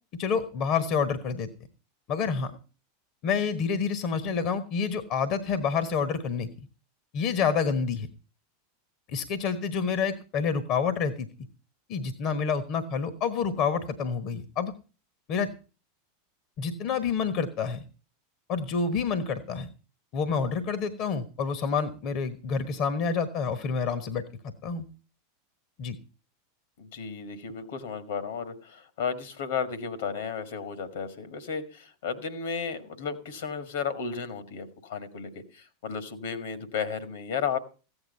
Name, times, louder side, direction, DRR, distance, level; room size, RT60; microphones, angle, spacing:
voice 1, 0.2-1.5 2.1-2.6 3.2-6.5 7.1-8.1 9.1-11.3 11.9-14.7 15.3-15.5 16.6-17.8 18.5-19.7 20.1-24.9 25.8-26.0, left 6 dB, 45° left, 13 dB, 1.2 m, -28 dB
voice 2, 26.8-37.6, left 6 dB, 65° left, 13 dB, 1.7 m, -34 dB
15.0 x 8.9 x 5.4 m, 0.35 s
figure-of-eight pair, 85°, 0 cm